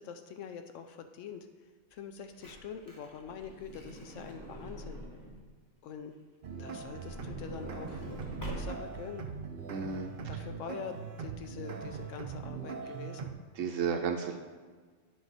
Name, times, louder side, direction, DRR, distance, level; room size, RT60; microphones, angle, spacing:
voice 1, 0.0-1.5 1.9-5.0 5.8-6.1 6.6-8.1 8.5-9.3 10.3-13.3, left 7 dB, 80° left, 7 dB, 1.0 m, -44 dB
Truck / Door, 2.0-5.5 6.6-9.1 9.8-9.9 10.1-10.2, right 1 dB, 15° left, 1.1 m, -45 dB
sound 1, 6.4-13.3, right 5 dB, 50° right, 0.7 m, -41 dB
voice 2, 9.7-10.1 13.6-14.4, right 6 dB, 85° right, 3 dB, 1.0 m, -32 dB
10.5 x 4.8 x 4.1 m, 1.5 s
omnidirectional pair, 1.3 m